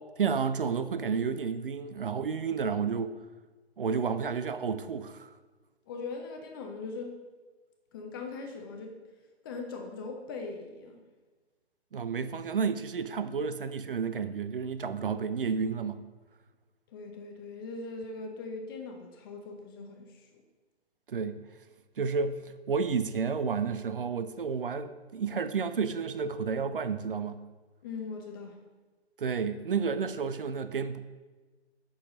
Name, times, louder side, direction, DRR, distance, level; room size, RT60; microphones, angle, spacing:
voice 1, 0.2-3.2 3.8-5.3 11.9-16.0 21.1-21.3 22.0-27.4 29.2-31.1, right 5 dB, 55° right, 11 dB, 0.5 m, -31 dB
voice 2, 5.9-7.2 7.9-9.0 9.4-11.0 16.9-20.3 27.8-28.6, left 4 dB, 20° left, 3 dB, 0.8 m, -40 dB
7.5 x 6.3 x 5.1 m, 1.3 s
figure-of-eight pair, 130°, 33 cm